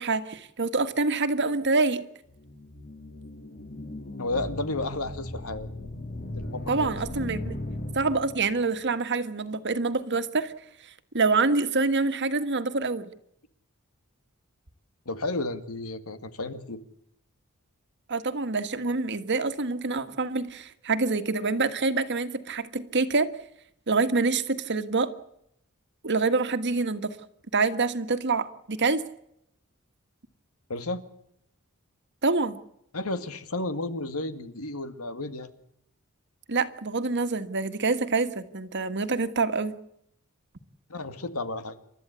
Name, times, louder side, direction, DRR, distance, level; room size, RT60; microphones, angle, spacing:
voice 1, 0.0-2.0 6.7-7.6 7.9-10.5 11.1-13.1 18.1-23.3 23.9-25.1 26.0-27.2 27.5-29.0 32.2-32.6 36.5-39.7, right 3 dB, 55° right, 11 dB, 1.6 m, -26 dB
sound 1, 2.3-8.6, left 1 dB, 45° left, 2.2 m, -37 dB
voice 2, 4.2-5.7 6.3-6.9 15.1-16.8 30.7-31.0 32.9-35.5 40.9-41.8, left 2 dB, 90° left, 11 dB, 2.1 m, -32 dB
29.0 x 13.5 x 8.2 m, 0.78 s
head